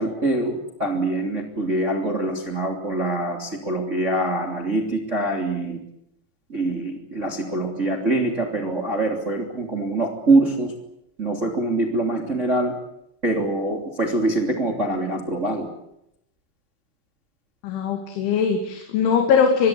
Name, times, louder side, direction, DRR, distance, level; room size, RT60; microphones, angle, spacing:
voice 1, 0.0-5.8 6.5-10.7 11.2-12.7 13.2-15.7, right 2 dB, 20° right, 3 dB, 2.6 m, -24 dB
voice 2, 17.6-19.7, left 6 dB, 85° left, 4 dB, 4.9 m, -20 dB
25.5 x 22.5 x 8.5 m, 0.81 s
omnidirectional pair, 5.3 m